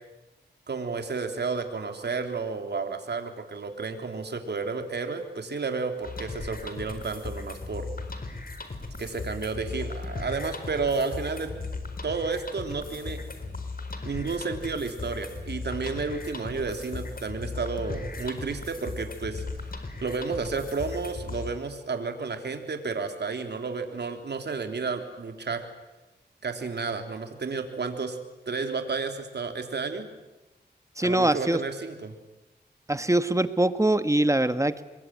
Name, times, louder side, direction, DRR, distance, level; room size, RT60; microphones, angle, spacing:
voice 1, 0.7-7.9 9.0-11.5 12.0-13.2 14.0-19.4 20.0-25.6 26.4-28.2 28.4-30.1 31.0-32.1, right 4 dB, 70° right, 6 dB, 3.4 m, -31 dB
sound 1, 6.0-21.5, left 3 dB, 55° left, 4.4 m, -37 dB
voice 2, 31.0-31.6 32.9-34.8, right 1 dB, 15° right, 11 dB, 1.5 m, -23 dB
26.5 x 22.5 x 9.4 m, 1.1 s
cardioid pair, 60°, 18 cm